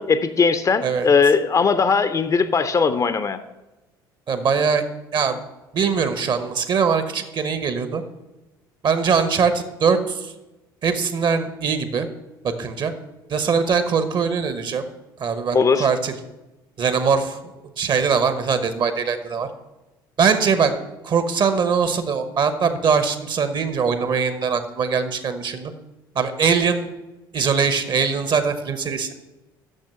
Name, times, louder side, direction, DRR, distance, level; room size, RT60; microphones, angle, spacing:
voice 1, 0.0-3.4 15.5-15.9, left 5 dB, 30° left, 12 dB, 0.6 m, -19 dB
voice 2, 4.3-4.8 5.1-5.4 5.7-8.0 8.8-10.3 10.8-12.1 12.4-12.9 13.3-14.8 15.2-16.2 16.8-17.4 17.8-19.5 20.2-20.7 21.0-25.7 26.1-26.9 27.3-29.1, right 6 dB, 40° right, 10 dB, 0.9 m, -21 dB
6.6 x 6.5 x 7.5 m, 1.0 s
figure-of-eight pair, 60°, 12 cm